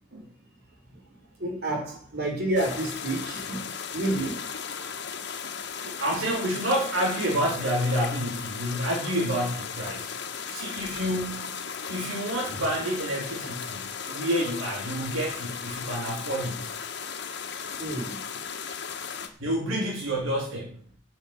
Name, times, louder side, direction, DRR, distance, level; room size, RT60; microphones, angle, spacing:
voice 1, 1.4-4.4 17.8-18.2, right 1 dB, 50° right, 1 dB, 4.9 m, -29 dB
sound 1, 2.6-19.3, left 6 dB, 55° left, 1.6 m, -36 dB
voice 2, 5.8-10.1 10.5-11.6 11.9-16.7 19.4-20.8, equal, 80° right, -2 dB, 3.8 m, -29 dB
9.7 x 7.0 x 9.1 m, 0.43 s
head